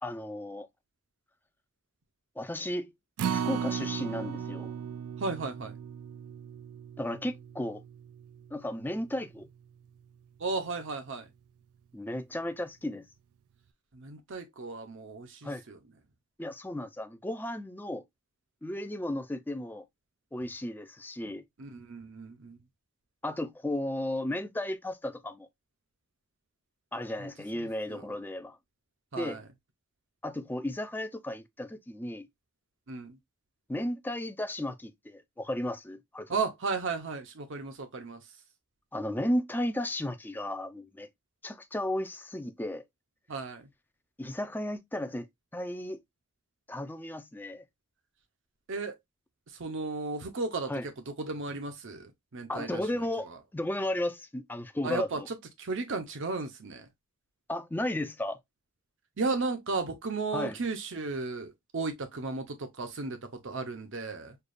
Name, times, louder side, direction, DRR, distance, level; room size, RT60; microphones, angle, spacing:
voice 1, 0.0-0.7 2.4-2.9 3.3-4.7 7.0-7.8 8.5-9.5 11.9-13.0 15.4-15.6 16.4-18.0 18.6-19.8 20.3-21.4 23.2-25.5 26.9-28.6 29.2-29.4 30.2-32.3 33.7-36.3 38.9-41.1 41.4-42.8 44.2-45.3 45.5-46.0 46.7-47.6 50.7-50.9 52.5-53.3 53.5-55.3 57.5-58.4 60.3-60.6, left 1 dB, 10° left, 0.4 m, -34 dB
Acoustic guitar, 3.2-9.5 9.9-10.0 10.4-10.5, right 7 dB, 80° right, 0.3 m, -37 dB
voice 2, 5.2-5.7 10.4-11.3 13.9-15.8 21.6-22.6 27.9-28.0 29.1-29.4 32.9-33.2 36.3-38.2 43.3-43.7 48.7-48.9 49.6-50.7 51.3-52.8 54.8-55.2 55.6-56.9 59.2-63.2 63.4-64.3, right 3 dB, 55° right, 0.7 m, -34 dB
6.5 x 2.4 x 2.5 m
head